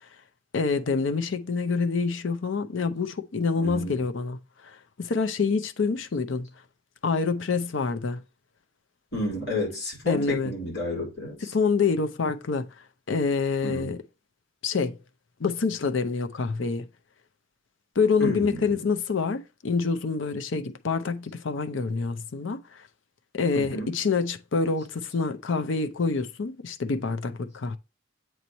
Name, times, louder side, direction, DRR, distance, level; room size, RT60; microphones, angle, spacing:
voice 1, 0.5-6.5 7.0-8.2 10.1-10.5 11.5-12.7 13.1-14.0 14.6-15.0 15.4-16.9 18.0-22.9 23.3-27.8, left 4 dB, 75° left, 0.6 m, -26 dB
voice 2, 3.6-4.0 9.1-11.5 13.6-13.9 18.2-18.8 23.5-24.0, left 1 dB, 60° left, 3.3 m, -32 dB
7.9 x 3.1 x 4.0 m
head